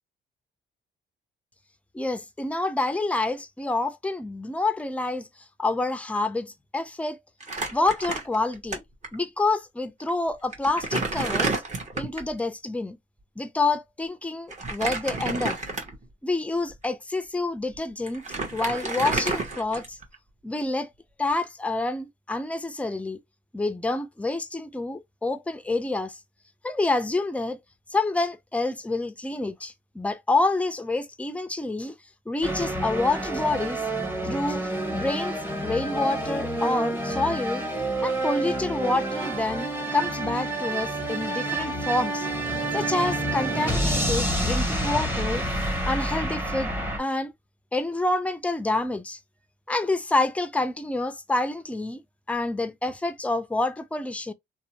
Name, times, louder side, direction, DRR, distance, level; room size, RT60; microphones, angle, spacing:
voice 1, 1.9-5.3 5.6-7.2 7.7-8.8 9.1-11.6 11.9-13.0 13.4-15.6 16.2-18.2 18.5-20.0 20.4-20.9 21.2-23.2 23.5-26.2 26.6-27.6 27.9-32.0 32.3-33.8 34.2-35.4 35.6-37.6 38.0-42.3 42.7-45.4 45.9-47.3 47.7-49.2 49.7-52.0 52.3-54.3, left 2 dB, 5° left, 0.4 m, -27 dB
Crumpling crinkling, 7.4-8.8 9.0-9.2 10.0-10.1 10.5-12.3 14.5-16.1 16.7-16.9 17.7-17.8 18.1-20.2, right 3 dB, 35° right, 1.0 m, -30 dB
Movie Intro Fanfare, 32.4-47.0, right 1 dB, 10° right, 0.8 m, -28 dB
2.7 x 2.1 x 2.9 m
cardioid pair, 90°, 20 cm